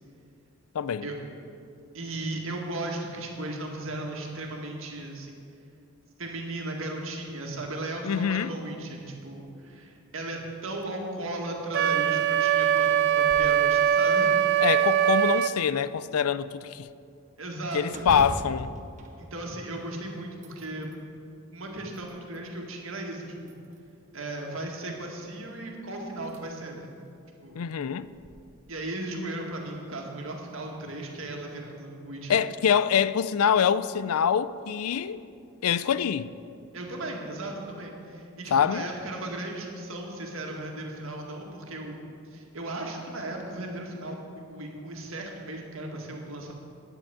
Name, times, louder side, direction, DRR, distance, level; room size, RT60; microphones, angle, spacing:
voice 1, 0.7-1.1 8.0-8.5 14.6-16.9 17.7-18.8 27.5-28.1 32.3-35.2 35.6-36.3 38.5-38.9, left 7 dB, 80° left, 0.4 m, -25 dB
voice 2, 1.9-5.4 6.2-14.3 17.4-18.1 19.2-20.9 21.5-23.6 24.1-27.0 27.4-27.6 28.7-32.4 36.7-42.0 42.3-44.2 44.5-46.5, right 2 dB, 65° right, 2.0 m, -36 dB
Wind instrument woodwind instrument, 11.7-15.5, right 9 dB, 50° right, 0.4 m, -22 dB
sound 1, 13.1-13.6 14.0-14.1 14.7-15.5 17.9-19.9 20.3-21.0 21.7-22.5 23.4-24.1 25.5-25.6 26.2-26.4 26.9-27.0 28.0-28.3, right 1 dB, 35° right, 1.1 m, -41 dB
9.2 x 8.9 x 8.7 m
head